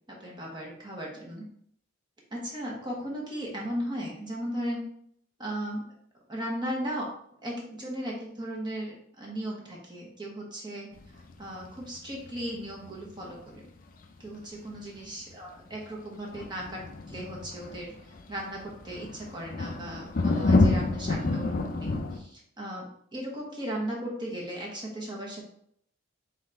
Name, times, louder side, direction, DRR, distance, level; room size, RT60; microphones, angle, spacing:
voice 1, 0.1-1.4 2.3-4.8 5.4-5.8 6.3-7.1 7.4-10.9 11.1-13.6 14.2-25.4, equal, 20° right, -3 dB, 1.0 m, -37 dB
sound 1, 11.0-11.8 12.2-13.2 13.5-13.6 14.0-14.3 14.7-15.0 15.7-15.9 16.3-22.2, left 2 dB, 40° left, 0.4 m, -28 dB
4.1 x 3.9 x 3.3 m, 0.67 s
head